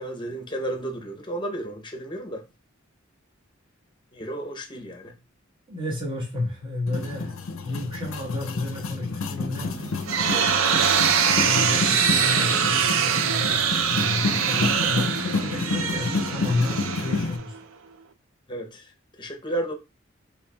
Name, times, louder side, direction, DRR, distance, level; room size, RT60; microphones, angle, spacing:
voice 1, 0.0-2.4 4.1-5.1 10.3-10.7 18.5-18.9 19.2-19.7, right 1 dB, 25° left, 0.7 m, -33 dB
voice 2, 5.7-7.3 7.6-9.7 11.4-17.5, left 2 dB, 25° right, 1.3 m, -31 dB
sound 1, 6.9-17.4, left 3 dB, 80° left, 0.5 m, -30 dB
sound 2, 9.7-17.6, right 7 dB, 85° right, 0.4 m, -23 dB
4.3 x 2.9 x 2.2 m
head